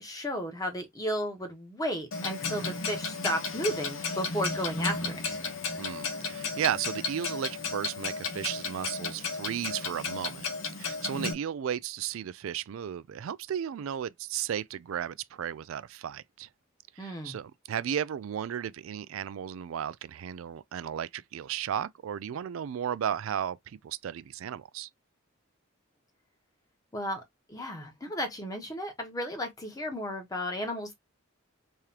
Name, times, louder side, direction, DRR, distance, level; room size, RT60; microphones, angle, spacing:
voice 1, 0.0-5.4 17.0-17.4 26.9-27.2 27.5-30.9, equal, 20° left, 1.1 m, -34 dB
Clock, 2.1-11.3, left 4 dB, 75° left, 1.0 m, -34 dB
voice 2, 5.8-10.5 10.8-16.5 17.0-24.9, right 9 dB, 80° right, 0.3 m, -34 dB
3.6 x 3.2 x 2.8 m
head